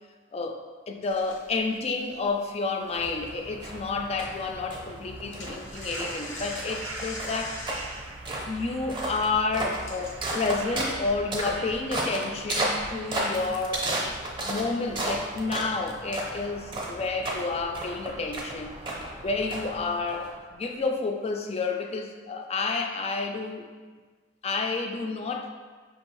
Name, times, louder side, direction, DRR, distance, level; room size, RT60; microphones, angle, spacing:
voice 1, 0.9-7.6 8.5-14.0 14.4-18.7 19.2-23.6 24.4-25.5, left 3 dB, 30° left, 4 dB, 0.3 m, -30 dB
sound 1, 1.0-3.8 4.0-4.3 4.6-10.9, left 2 dB, 90° left, 0.9 m, -42 dB
sound 2, 2.9-20.7, right 1 dB, 25° right, 0.6 m, -34 dB
sound 3, 5.7-17.0, right 4 dB, 80° right, 0.4 m, -46 dB
5.5 x 2.6 x 3.0 m, 1.4 s
head